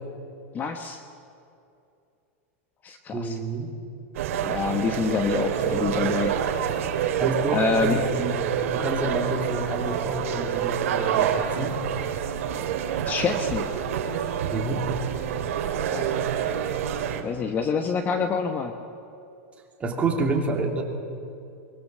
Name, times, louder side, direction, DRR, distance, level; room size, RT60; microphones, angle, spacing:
voice 1, 0.5-1.0 2.8-3.4 4.4-6.3 7.5-8.0 13.0-13.7 15.9-16.1 17.2-18.7, left 5 dB, 25° left, 7 dB, 1.1 m, -26 dB
voice 2, 3.1-3.7 7.2-11.8 12.7-12.8 14.5-14.9 19.8-20.8, right 2 dB, 15° right, 1 dB, 2.9 m, -28 dB
sound 1, 4.1-17.2, right 9 dB, 70° right, 2.3 m, -27 dB
23.0 x 22.0 x 7.5 m, 2.6 s
supercardioid pair, 150°, 8 cm